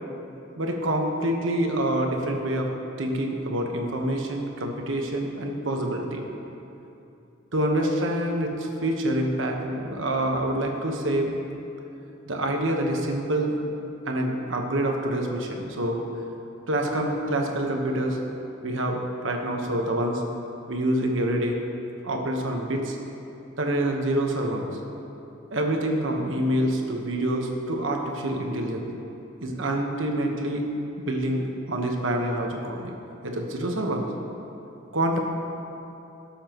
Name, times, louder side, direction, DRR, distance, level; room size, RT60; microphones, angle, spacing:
voice 1, 0.6-2.7 3.0-6.2 7.5-11.4 12.3-13.6 14.1-16.0 16.7-18.2 18.6-20.2 20.7-21.6 22.0-23.0 23.6-24.7 25.5-28.9 29.4-30.6 31.1-32.9 33.2-34.1 34.9-35.2, right 1 dB, 75° right, 1 dB, 1.2 m, -26 dB
18.0 x 7.2 x 3.0 m, 2.8 s
head